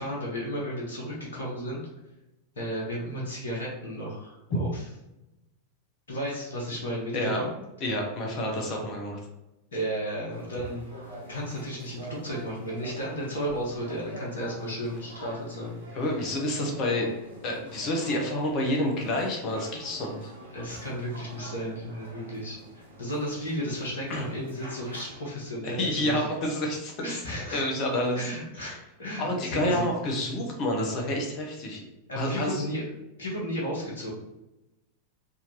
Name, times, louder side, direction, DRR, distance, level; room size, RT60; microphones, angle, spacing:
voice 1, 0.0-1.8 2.5-4.8 6.1-7.5 8.7-8.8 9.7-10.8 11.3-15.8 20.5-22.6 23.0-26.3 27.0-27.6 28.1-29.9 32.1-32.8 33.2-34.1, equal, 65° left, -4 dB, 1.1 m, -33 dB
voice 2, 7.1-7.4 7.8-9.2 15.9-17.1 17.4-20.3 24.1-24.2 25.6-27.2 27.5-28.3 28.6-28.8 29.2-31.8 32.1-32.6, left 1 dB, 35° left, 1 dB, 1.0 m, -29 dB
sound 1, 10.3-25.1, right 1 dB, 75° right, 1.0 m, -46 dB
3.6 x 2.8 x 3.0 m, 0.95 s
figure-of-eight pair, 90°, 0 cm